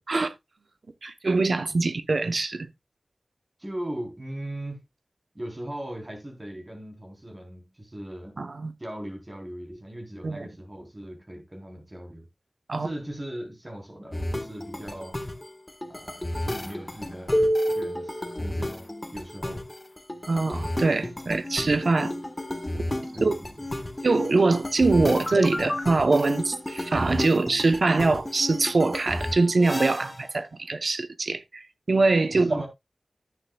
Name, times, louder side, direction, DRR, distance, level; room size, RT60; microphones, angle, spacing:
voice 1, 1.0-2.7 8.4-8.7 10.2-10.5 12.7-12.9 20.3-22.1 22.7-22.9 23.2-23.3 24.0-32.7, right 3 dB, 70° right, 0.9 m, -23 dB
voice 2, 3.6-4.8 5.3-8.4 8.8-12.3 12.7-15.2 15.9-19.6 23.1-23.7 32.3-32.7, right 1 dB, 25° right, 3.9 m, -39 dB
sound 1, 14.1-30.2, left 1 dB, 25° left, 1.5 m, -31 dB
11.0 x 9.6 x 2.3 m
wide cardioid pair, 65°, 0 cm